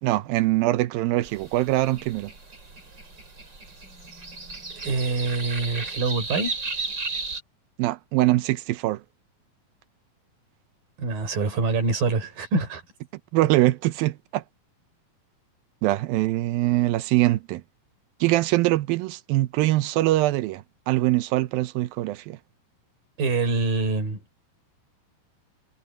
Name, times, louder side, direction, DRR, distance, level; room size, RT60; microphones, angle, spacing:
voice 1, 0.0-2.3 7.8-9.0 13.3-14.4 15.8-17.6 18.2-22.4, right 17 dB, 85° right, 2.5 m, -23 dB
sound 1, 1.2-7.4, right 3 dB, 30° right, 5.2 m, -35 dB
voice 2, 4.8-6.6 11.0-12.8 23.2-24.2, right 3 dB, 70° right, 6.3 m, -25 dB
omnidirectional pair, 4.1 m